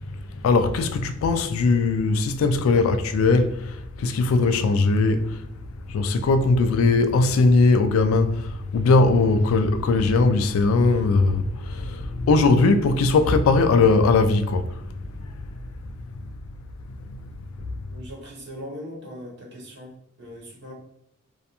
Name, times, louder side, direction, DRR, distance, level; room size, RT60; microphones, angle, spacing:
voice 1, 0.4-5.4 5.9-14.7, left 3 dB, 80° left, 0.3 m, -20 dB
voice 2, 17.8-20.7, equal, 55° right, 0.8 m, -40 dB
2.4 x 2.2 x 2.8 m
head